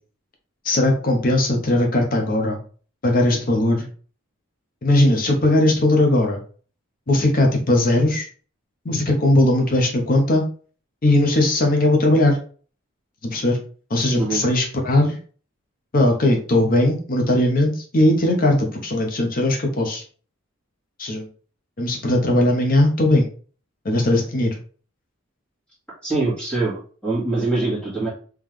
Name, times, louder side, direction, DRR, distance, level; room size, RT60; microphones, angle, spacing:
voice 1, 0.6-2.6 3.0-3.9 4.8-6.4 7.1-8.3 8.8-10.4 11.0-12.4 13.2-13.6 13.9-15.2 15.9-20.0 21.0-21.3 21.8-23.3 23.8-24.6, left 1 dB, 45° left, 2 dB, 0.8 m, -19 dB
voice 2, 26.0-28.1, right 2 dB, 5° left, -7 dB, 1.9 m, -23 dB
3.7 x 3.1 x 3.1 m, 0.41 s
head